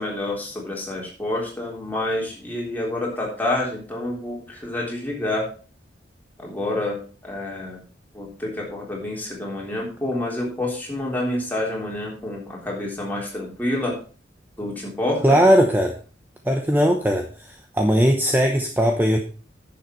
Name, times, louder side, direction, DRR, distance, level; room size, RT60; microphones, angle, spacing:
voice 1, 0.0-5.5 6.4-7.8 8.1-14.0 14.6-15.4, left 1 dB, 10° left, -3 dB, 3.6 m, -28 dB
voice 2, 15.2-16.0 16.4-19.2, equal, 10° right, 3 dB, 0.9 m, -19 dB
10.5 x 7.1 x 4.6 m, 0.39 s
head